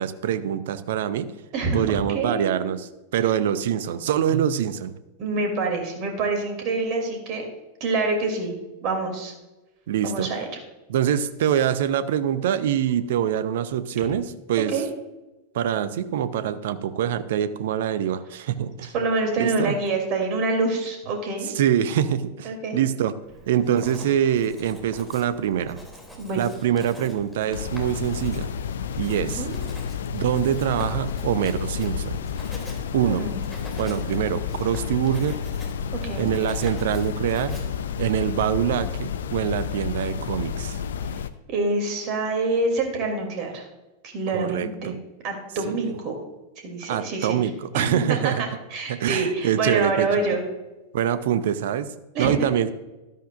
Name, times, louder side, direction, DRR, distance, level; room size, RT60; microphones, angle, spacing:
voice 1, 0.0-1.3 1.7-4.9 9.9-10.3 10.9-14.8 15.5-18.9 19.4-19.8 21.5-23.1 23.5-25.8 26.4-28.5 29.0-29.5 30.1-32.2 32.9-33.3 33.8-35.4 36.2-37.6 38.0-40.8 44.3-45.0 45.6-45.9 46.9-48.5 48.9-50.3 50.9-51.9 52.2-52.7, right 9 dB, 55° right, 13 dB, 0.7 m, -24 dB
voice 2, 1.5-2.6 5.2-7.4 7.8-8.5 8.8-9.3 10.0-10.5 14.7-14.8 18.9-21.5 22.4-22.8 26.2-26.4 29.2-29.6 33.0-33.4 35.9-36.3 41.5-43.7 44.0-45.0 45.2-46.2 46.6-50.4 52.1-52.6, right 3 dB, 40° right, 3 dB, 2.9 m, -26 dB
Writing, 23.2-38.6, equal, ahead, 2.8 m, -45 dB
sound 1, 27.5-41.3, left 7 dB, 65° left, 0.6 m, -30 dB
13.0 x 12.5 x 2.5 m, 1.1 s
figure-of-eight pair, 90°, 0 cm